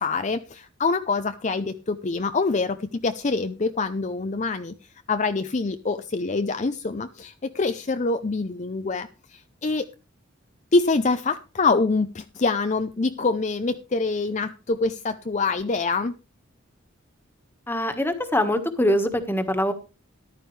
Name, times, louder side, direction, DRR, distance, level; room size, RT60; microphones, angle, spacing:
voice 1, 0.0-4.8 5.1-9.9 10.7-16.1, left 3 dB, 35° left, 9 dB, 0.6 m, -25 dB
voice 2, 17.7-19.7, left 1 dB, 10° left, 8 dB, 1.5 m, -23 dB
14.0 x 12.0 x 3.3 m, 0.31 s
head